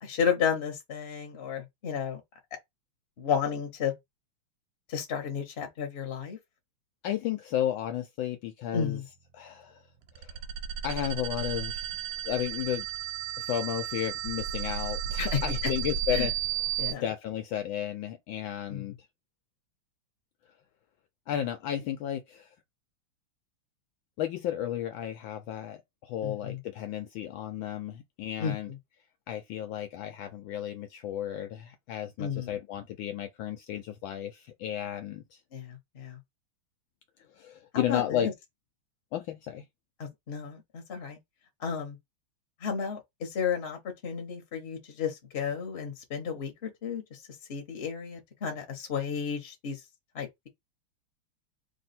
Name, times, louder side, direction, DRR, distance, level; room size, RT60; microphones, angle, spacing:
voice 1, 0.0-2.2 3.2-3.9 4.9-6.4 8.7-9.0 15.2-15.4 16.1-16.3 16.8-17.1 18.7-18.9 26.2-26.6 28.4-28.8 32.2-32.5 35.5-36.2 37.7-38.3 40.0-41.2 41.6-42.0 42.6-47.2 47.5-49.8 50.1-50.5, left 7 dB, 40° left, 1.0 m, -32 dB
voice 2, 7.0-9.0 9.3-9.8 10.2-10.3 10.8-11.8 12.2-12.9 13.4-16.3 17.0-18.9 21.3-22.5 24.2-28.7 29.3-35.4 37.4-38.3 39.1-39.6, left 11 dB, 75° left, 1.2 m, -33 dB
sound 1, 10.1-16.9, right 9 dB, 70° right, 1.0 m, -33 dB
3.3 x 2.6 x 4.2 m
omnidirectional pair, 2.4 m